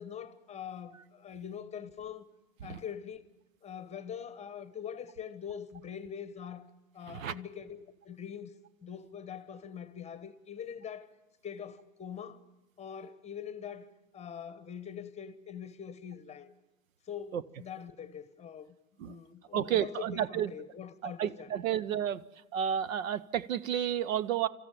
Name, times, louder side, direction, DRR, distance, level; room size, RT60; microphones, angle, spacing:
voice 1, 0.0-2.2 2.6-3.2 3.6-8.5 8.8-11.1 11.4-12.4 12.8-16.5 17.1-21.8, left 8 dB, 15° left, 1.1 m, -43 dB
voice 2, 19.5-20.5 21.0-22.2 22.5-24.5, right 10 dB, 65° right, 0.9 m, -31 dB
27.5 x 14.0 x 9.0 m
hypercardioid pair, 115°, 42 cm